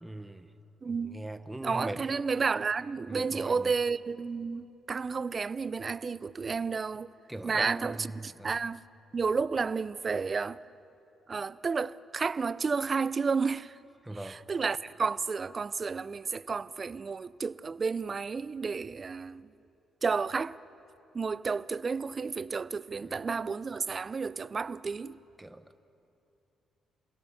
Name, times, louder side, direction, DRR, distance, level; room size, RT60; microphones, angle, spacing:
voice 1, 0.0-0.5 0.8-2.0 3.1-3.7 7.3-8.5 14.0-14.4 23.0-23.2 25.4-25.8, right 1 dB, 10° right, 1.1 m, -41 dB
voice 2, 0.8-1.3 1.6-7.1 7.4-8.8 9.1-10.6 11.3-13.8 14.2-19.5 20.0-20.6 21.1-25.2, right 5 dB, 35° right, 0.5 m, -31 dB
28.0 x 16.5 x 7.2 m
cardioid pair, 90°, 0 cm